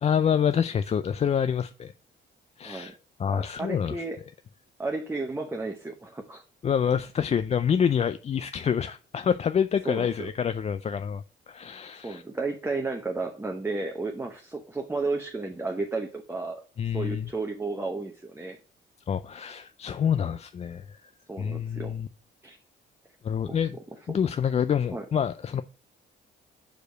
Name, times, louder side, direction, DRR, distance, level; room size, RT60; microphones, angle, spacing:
voice 1, 0.0-1.9 2.6-4.0 6.6-12.2 16.8-17.3 19.1-21.0 21.4-22.1 23.2-23.8 24.1-25.6, left 8 dB, 35° left, 0.4 m, -27 dB
voice 2, 2.6-2.9 3.3-4.2 4.8-6.4 9.9-10.1 12.0-16.6 16.9-18.6 21.3-21.9 22.4-22.6 23.5-23.6 24.1-24.2 24.9-25.0, right 3 dB, 10° right, 0.8 m, -33 dB
5.0 x 4.6 x 6.1 m
cardioid pair, 90°, 20 cm